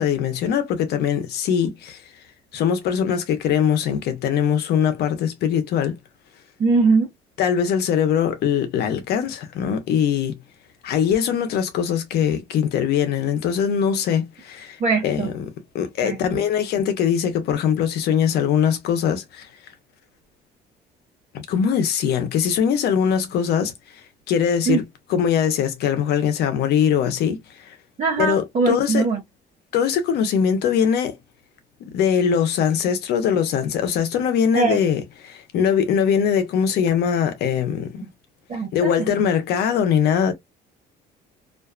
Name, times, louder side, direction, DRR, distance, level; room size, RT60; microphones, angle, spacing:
voice 1, 0.0-2.0 2.5-6.0 7.4-10.4 10.8-14.8 15.0-19.5 21.3-23.7 24.3-24.8 25.1-27.8 28.2-29.0 29.7-31.2 31.9-38.1 38.7-40.3, left 8 dB, 75° left, 0.8 m, -21 dB
voice 2, 6.6-7.1 14.8-15.3 16.0-16.2 24.7-24.8 28.0-29.2 34.5-34.8 38.5-39.2, right 4 dB, 45° right, 0.9 m, -21 dB
2.6 x 2.4 x 2.4 m
cardioid pair, 110°, 17 cm